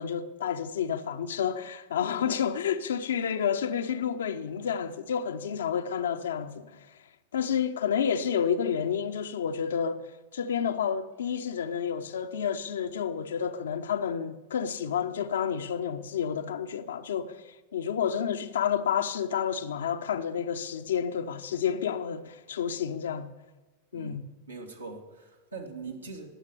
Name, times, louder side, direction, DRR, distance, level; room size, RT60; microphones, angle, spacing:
voice 1, 0.0-7.0 7.3-10.0 10.3-23.3 23.9-24.3, left 8 dB, 65° left, 0.9 m, -30 dB
voice 2, 24.5-26.3, right 4 dB, 80° right, 2.6 m, -41 dB
19.5 x 7.5 x 9.9 m
figure-of-eight pair, 90°, 0 cm